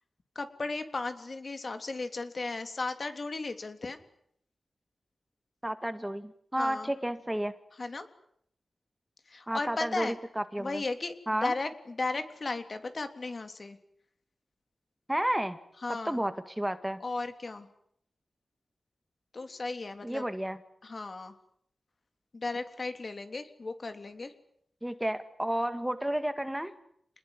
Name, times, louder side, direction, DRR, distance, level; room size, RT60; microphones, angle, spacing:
voice 1, 0.3-4.0 6.5-6.9 7.8-8.1 9.3-10.1 10.6-13.8 15.8-16.2 17.0-17.7 19.3-20.2 20.8-21.3 22.3-24.3, left 3 dB, 50° left, 8 dB, 3.2 m, -35 dB
voice 2, 5.6-7.5 9.5-10.8 11.3-11.5 15.1-15.6 16.1-17.0 20.0-20.6 24.8-26.7, right 1 dB, 10° right, 10 dB, 1.9 m, -31 dB
28.0 x 20.5 x 9.8 m, 0.71 s
wide cardioid pair, 70°, 0 cm